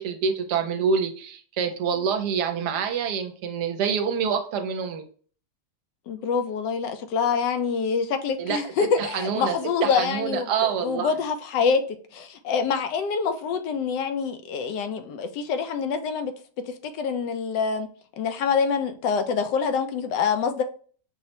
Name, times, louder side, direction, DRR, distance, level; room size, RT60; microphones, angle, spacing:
voice 1, 0.0-5.0 8.4-9.6 9.8-11.1, right 6 dB, 75° right, 1.1 m, -26 dB
voice 2, 6.1-11.8 12.1-16.3 17.0-17.9 18.2-20.6, left 6 dB, 85° left, 1.2 m, -26 dB
5.5 x 2.1 x 2.7 m
omnidirectional pair, 1.8 m